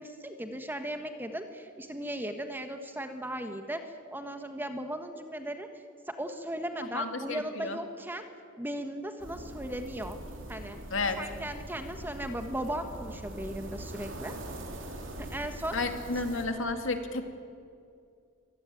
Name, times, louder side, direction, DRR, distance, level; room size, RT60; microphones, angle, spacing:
voice 1, 0.0-8.3 8.6-10.2 10.5-10.8 11.2-14.3 15.2-15.8, right 1 dB, 10° right, 7 dB, 1.3 m, -37 dB
voice 2, 6.9-7.8 10.9-11.2 15.7-17.2, left 3 dB, 65° left, 6 dB, 2.4 m, -31 dB
sound 1, 9.2-16.5, right 1 dB, 65° right, 3.5 m, -42 dB
25.0 x 18.5 x 9.1 m, 2.3 s
head